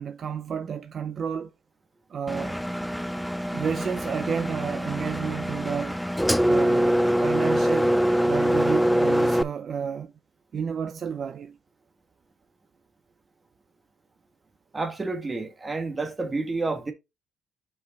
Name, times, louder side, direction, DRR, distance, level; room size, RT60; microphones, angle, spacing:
voice 1, 0.0-1.5 2.1-2.6 3.5-6.0 6.5-7.9 8.2-10.1 10.5-11.6, right 7 dB, 55° right, 0.6 m, -31 dB
Engine, 2.3-9.4, equal, ahead, 0.3 m, -24 dB
voice 2, 14.7-16.9, right 3 dB, 25° right, 1.6 m, -29 dB
5.4 x 4.8 x 4.0 m
cardioid pair, 90°, 0 cm